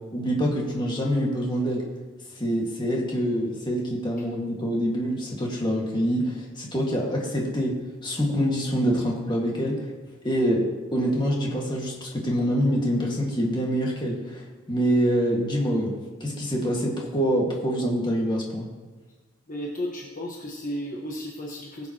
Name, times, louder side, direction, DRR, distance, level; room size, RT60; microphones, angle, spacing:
voice 1, 0.1-1.8 2.4-7.8 8.0-9.9 10.2-15.9 16.2-18.7, equal, 20° left, -2 dB, 1.8 m, -25 dB
voice 2, 19.5-21.9, equal, 40° left, -2 dB, 1.2 m, -34 dB
20.5 x 7.1 x 3.0 m, 1.3 s
head